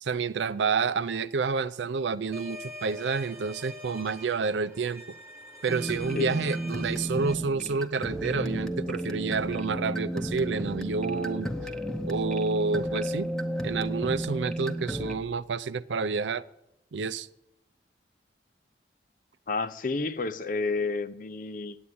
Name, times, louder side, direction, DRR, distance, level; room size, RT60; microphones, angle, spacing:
voice 1, 0.0-5.0 5.6-11.5 12.1-13.3 13.6-16.4 16.9-17.3, right 4 dB, 90° right, 0.5 m, -29 dB
sound 1, 2.3-7.3, left 1 dB, 15° right, 1.3 m, -44 dB
sound 2, 5.7-15.2, right 1 dB, 5° left, 0.8 m, -32 dB
voice 2, 19.5-21.8, left 3 dB, 50° left, 0.6 m, -30 dB
9.6 x 8.6 x 9.5 m
head